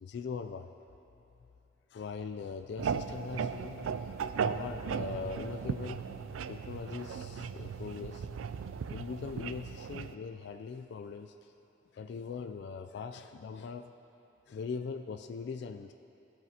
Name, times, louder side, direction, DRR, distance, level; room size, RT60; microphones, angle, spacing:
voice 1, 0.0-0.7 1.9-6.0 6.5-8.3 8.9-11.3 11.9-13.9 14.5-15.9, left 5 dB, 60° left, 7 dB, 0.3 m, -41 dB
sound 1, 2.8-10.1, right 6 dB, 90° right, 0.4 m, -37 dB
16.5 x 7.6 x 2.8 m, 2.9 s
head